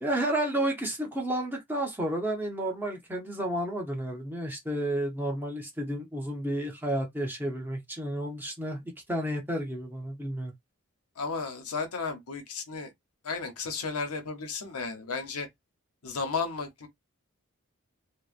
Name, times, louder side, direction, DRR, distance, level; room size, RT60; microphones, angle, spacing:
voice 1, 0.0-8.8 9.1-10.5, right 1 dB, 10° right, 0.7 m, -31 dB
voice 2, 11.2-12.9 13.2-15.5 16.0-16.9, left 4 dB, 90° left, 0.8 m, -33 dB
2.9 x 2.1 x 2.5 m
head